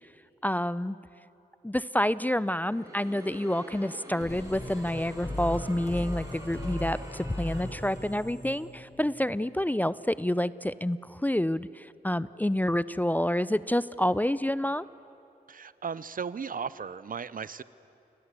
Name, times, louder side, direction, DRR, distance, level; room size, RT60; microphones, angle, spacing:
voice 1, 0.4-1.0 1.6-14.8, left 1 dB, 10° left, 17 dB, 0.5 m, -28 dB
Crowd, 2.6-8.3, right 1 dB, 20° right, 5.9 m, -45 dB
sound 1, 4.2-9.5, left 1 dB, 45° left, 5.7 m, -38 dB
voice 2, 15.5-17.6, right 6 dB, 55° right, 17 dB, 0.7 m, -36 dB
29.0 x 19.5 x 8.3 m, 3.0 s
cardioid pair, 60°, 17 cm